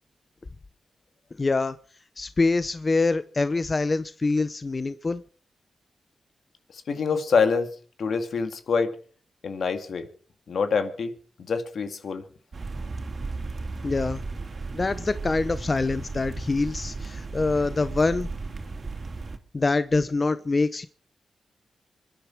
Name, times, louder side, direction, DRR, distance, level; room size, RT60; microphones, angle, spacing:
voice 1, 1.4-1.8 2.2-5.2 13.8-14.2 14.7-18.3 19.5-20.9, left 3 dB, 40° left, 0.7 m, -25 dB
voice 2, 6.7-7.7 8.0-9.0 9.4-10.1 10.5-11.1 11.4-12.2, left 5 dB, 75° left, 2.2 m, -25 dB
sound 1, 12.5-19.4, right 3 dB, 55° right, 2.7 m, -35 dB
26.0 x 10.5 x 4.6 m
cardioid pair, 65°, 0 cm